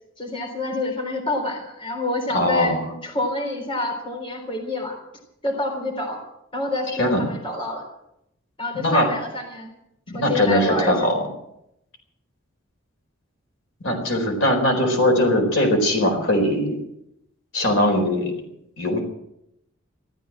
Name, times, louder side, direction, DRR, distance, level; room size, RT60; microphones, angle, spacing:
voice 1, 0.2-2.8 3.0-5.0 5.4-6.2 6.5-7.8 8.6-9.7 10.1-11.0, left 2 dB, 25° left, 2 dB, 3.7 m, -27 dB
voice 2, 2.3-2.9 7.0-7.3 8.8-9.1 10.1-11.2 13.8-16.8 17.5-18.3 18.8-19.0, left 1 dB, 70° left, 2 dB, 4.5 m, -20 dB
14.5 x 13.0 x 7.6 m, 0.81 s
head